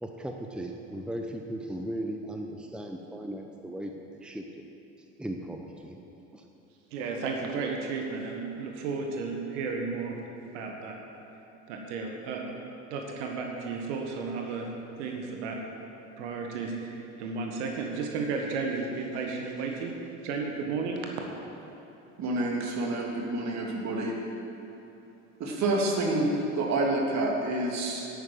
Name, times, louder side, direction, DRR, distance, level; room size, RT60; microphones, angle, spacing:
voice 1, 0.0-4.7 5.2-6.0 6.3-6.4, right 1 dB, ahead, 3 dB, 1.0 m, -37 dB
voice 2, 6.9-10.2 10.5-11.0 11.7-12.6 12.9-14.7 15.0-15.6 16.2-19.9 20.2-21.1, right 4 dB, 65° right, 1 dB, 1.7 m, -33 dB
voice 3, 22.2-24.2 25.4-28.1, right 2 dB, 45° right, 0 dB, 2.7 m, -28 dB
11.5 x 9.0 x 7.7 m, 2.9 s
hypercardioid pair, 70°, 38 cm